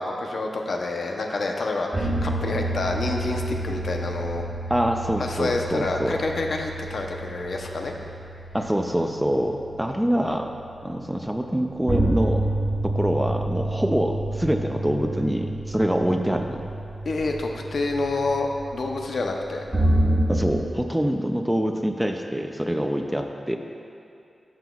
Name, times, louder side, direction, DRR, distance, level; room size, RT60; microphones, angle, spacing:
voice 1, 0.0-4.4 5.2-7.9 17.0-18.5 18.7-19.6, left 3 dB, 60° left, 2 dB, 0.6 m, -28 dB
sound 1, 1.9-20.6, right 1 dB, 25° right, 1.2 m, -29 dB
voice 2, 4.7-6.2 8.5-10.5 10.8-12.5 12.8-16.6 20.3-23.6, equal, 5° right, 4 dB, 0.3 m, -25 dB
11.5 x 7.2 x 2.3 m, 2.6 s
wide cardioid pair, 165°, 0 cm